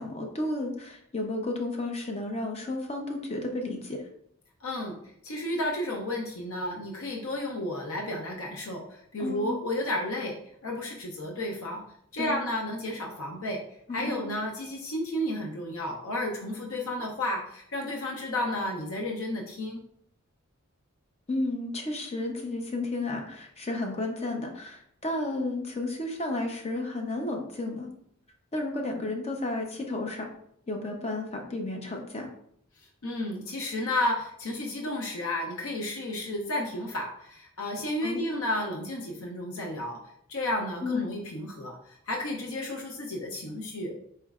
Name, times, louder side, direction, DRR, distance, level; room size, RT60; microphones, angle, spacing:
voice 1, 0.0-4.0 9.2-9.6 12.2-12.3 13.9-14.2 21.3-27.9 28.5-30.3 30.7-32.3 38.0-38.2 40.8-41.1, left 2 dB, 30° left, 2 dB, 0.5 m, -32 dB
voice 2, 4.6-5.0 5.2-11.8 12.1-13.6 13.9-19.8 33.0-40.0 40.3-41.8 42.1-44.0, left 1 dB, 70° left, 0 dB, 0.6 m, -32 dB
4.4 x 3.0 x 2.4 m, 0.69 s
head